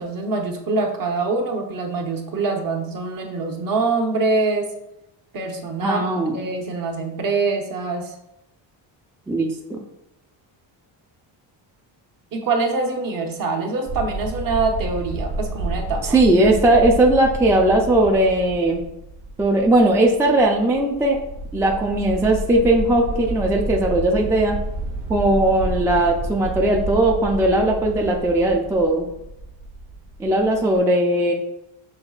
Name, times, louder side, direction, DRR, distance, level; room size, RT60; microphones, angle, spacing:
voice 1, 0.0-4.7 5.3-8.1 12.3-16.2, right 3 dB, 50° right, 2 dB, 0.9 m, -24 dB
voice 2, 5.8-6.4 9.3-9.8 16.0-18.8 19.4-21.2 21.5-24.6 25.1-29.1 30.2-31.3, right 1 dB, 5° right, 0 dB, 0.3 m, -18 dB
sound 1, 13.9-30.8, right 2 dB, 80° right, 0.9 m, -31 dB
6.9 x 3.0 x 2.4 m, 0.87 s
cardioid pair, 115°, 45 cm